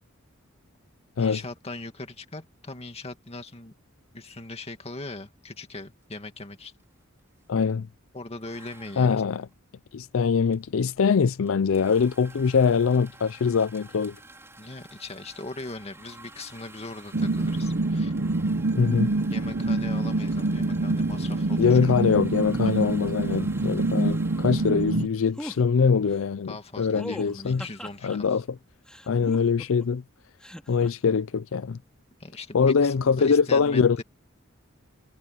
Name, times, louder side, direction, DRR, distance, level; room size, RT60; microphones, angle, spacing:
voice 1, 1.2-3.7 4.1-6.7 8.1-9.2 14.6-18.2 19.3-22.2 22.6-22.9 26.5-28.4 32.2-34.0, left 2 dB, 30° left, 2.2 m, -40 dB
sound 1, 6.0-6.3 6.6-7.8 8.4-25.0, right 2 dB, 15° right, 4.0 m, -51 dB
voice 2, 7.5-7.9 9.0-9.5 9.9-14.2 18.8-19.1 21.6-27.6 28.0-28.4 29.1-30.0 30.7-31.8 32.5-34.0, left 5 dB, 70° left, 0.4 m, -23 dB
sound 2, 17.1-25.1, right 2 dB, 50° right, 0.8 m, -26 dB
sound 3, 25.4-25.6 26.9-28.2 28.9-29.9 30.4-30.9, equal, 5° left, 3.1 m, -39 dB
head